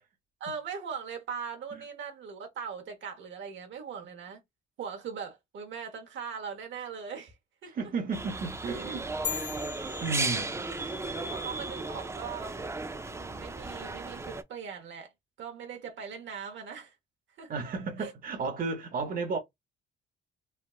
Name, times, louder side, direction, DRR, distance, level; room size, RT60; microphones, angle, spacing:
voice 1, 0.4-4.4 4.8-7.4 7.6-7.7 10.2-10.6 11.3-12.6 13.1-15.1 15.4-16.9 17.4-17.5 18.0-18.1, right 6 dB, 70° right, 1.0 m, -40 dB
voice 2, 7.7-9.1 10.0-10.5 17.5-19.4, right 4 dB, 45° right, 0.9 m, -33 dB
sound 1, 8.1-14.4, right 3 dB, 15° right, 0.4 m, -35 dB
sound 2, 9.2-11.0, left 9 dB, 60° left, 0.6 m, -38 dB
3.3 x 2.2 x 2.3 m
cardioid pair, 90°, 20 cm